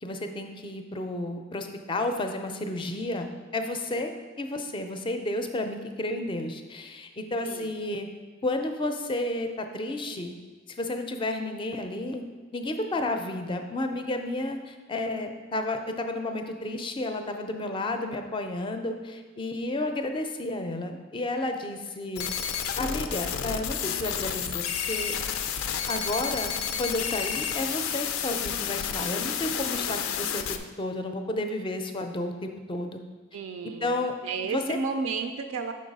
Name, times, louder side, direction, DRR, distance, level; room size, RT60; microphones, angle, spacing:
voice 1, 0.0-8.1 8.4-10.3 10.7-12.2 12.5-22.3 22.8-25.2 25.9-26.5 26.8-33.0 33.6-34.2 34.4-34.8, left 2 dB, 25° left, 6 dB, 0.4 m, -32 dB
sound 1, 22.2-30.6, left 8 dB, 90° left, 0.4 m, -31 dB
voice 2, 33.3-33.9 34.2-35.7, right 4 dB, 75° right, 6 dB, 0.3 m, -32 dB
5.3 x 3.9 x 5.2 m, 1.4 s
head